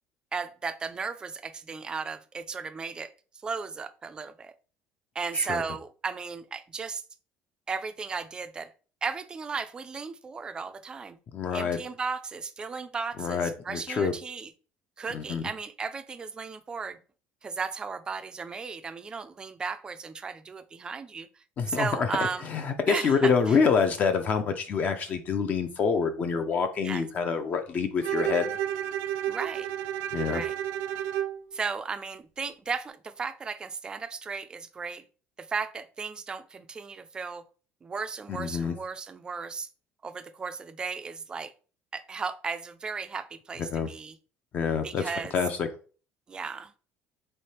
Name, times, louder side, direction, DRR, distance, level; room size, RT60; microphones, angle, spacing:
voice 1, 0.3-3.1 3.4-4.5 5.2-7.0 7.7-8.7 9.0-11.2 11.5-14.5 15.0-17.0 17.4-21.3 21.7-22.5 22.9-23.6 26.8-27.0 29.3-29.7 30.3-30.5 31.5-35.0 35.4-37.4 37.8-39.7 40.0-41.5 41.9-44.1 44.8-45.3 46.3-46.7, right 5 dB, 20° right, 0.4 m, -35 dB
voice 2, 11.3-11.8 13.2-14.1 15.1-15.4 21.6-28.5 30.1-30.4 38.3-38.7 43.7-43.9 44.5-45.0 45.3-45.7, left 5 dB, 35° left, 0.5 m, -26 dB
Bowed string instrument, 28.0-31.4, right 11 dB, 85° right, 0.4 m, -31 dB
3.7 x 3.3 x 4.2 m
cardioid pair, 155°, 4 cm